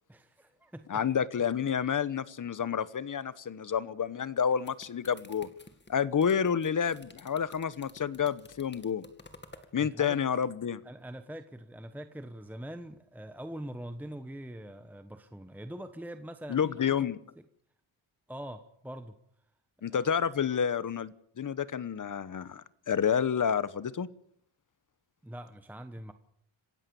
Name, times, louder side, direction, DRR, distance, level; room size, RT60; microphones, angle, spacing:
voice 1, 0.1-1.0 9.5-10.2 10.8-16.8 18.3-19.2 19.8-20.0 25.2-26.1, right 1 dB, 5° right, 8 dB, 1.1 m, -43 dB
voice 2, 0.9-5.5 5.9-9.0 9.7-10.8 16.5-17.2 19.8-24.1, left 7 dB, 40° left, 17 dB, 1.1 m, -29 dB
sound 1, 4.3-9.7, left 3 dB, 20° left, 2.3 m, -53 dB
27.0 x 15.5 x 7.0 m, 0.69 s
wide cardioid pair, 120°, 49 cm